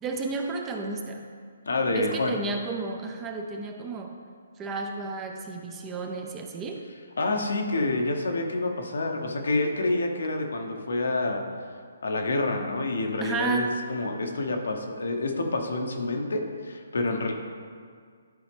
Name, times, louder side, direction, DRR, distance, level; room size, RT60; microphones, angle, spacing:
voice 1, 0.0-1.2 1.9-4.2 4.6-6.8 13.2-13.7, right 4 dB, 15° right, 3 dB, 0.6 m, -32 dB
voice 2, 1.7-2.4 7.2-11.4 12.0-17.3, left 2 dB, 75° left, 3 dB, 1.0 m, -28 dB
11.5 x 4.0 x 3.4 m, 2.1 s
hypercardioid pair, 150°, 0 cm